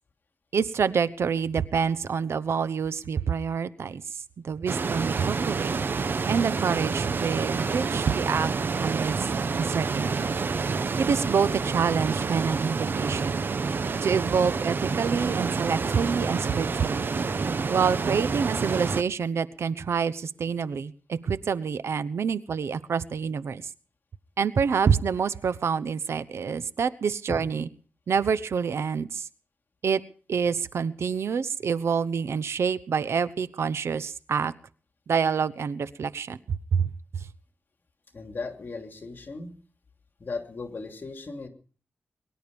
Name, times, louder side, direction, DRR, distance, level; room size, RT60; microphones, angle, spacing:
voice 1, 0.5-4.0 4.4-5.7 6.3-8.5 8.8-9.2 9.6-10.3 11.0-13.4 14.0-17.1 17.7-23.6 24.4-27.6 28.1-29.3 29.8-30.0 30.3-34.5 35.1-37.2, right 6 dB, 85° right, 15 dB, 0.9 m, -27 dB
sound 1, 4.7-19.0, right 4 dB, 55° right, 1.0 m, -28 dB
voice 2, 38.1-39.5 40.2-41.5, left 3 dB, 50° left, 5 dB, 2.9 m, -36 dB
22.5 x 11.5 x 5.3 m, 0.43 s
wide cardioid pair, 110°, 4 cm